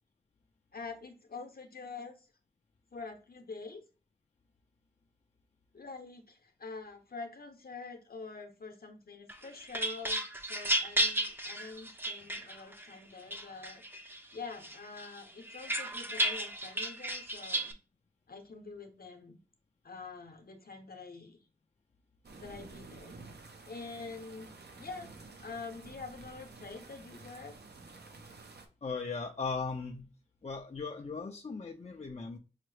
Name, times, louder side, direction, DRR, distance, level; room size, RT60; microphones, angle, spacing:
voice 1, 0.7-2.3 2.9-3.8 5.7-13.8 14.3-17.7 18.3-19.4 19.8-21.4 22.3-23.2 23.7-25.1 25.4-27.6, left 4 dB, 60° left, 5 dB, 0.8 m, -46 dB
sound 1, 9.3-12.9 13.3-14.2 14.6-17.7, right 1 dB, 10° right, 0.5 m, -33 dB
sound 2, 22.2-28.7, right 3 dB, 70° right, 0.6 m, -51 dB
voice 2, 28.8-30.1 30.4-32.4, left 4 dB, 40° left, 3 dB, 0.4 m, -38 dB
5.6 x 2.0 x 3.1 m, 0.34 s
wide cardioid pair, 65°, 18 cm